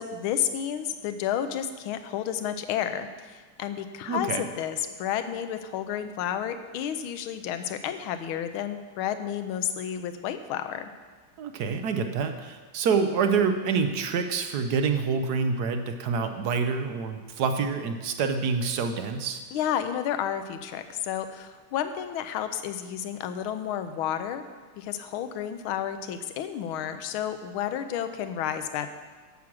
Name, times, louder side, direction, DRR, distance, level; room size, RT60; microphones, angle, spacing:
voice 1, 0.0-10.9 19.5-24.4 24.8-28.9, left 9 dB, 85° left, 9 dB, 1.5 m, -31 dB
voice 2, 4.1-4.4 11.4-19.4, right 5 dB, 65° right, 7 dB, 1.0 m, -27 dB
9.4 x 7.4 x 6.2 m, 1.4 s
omnidirectional pair, 2.3 m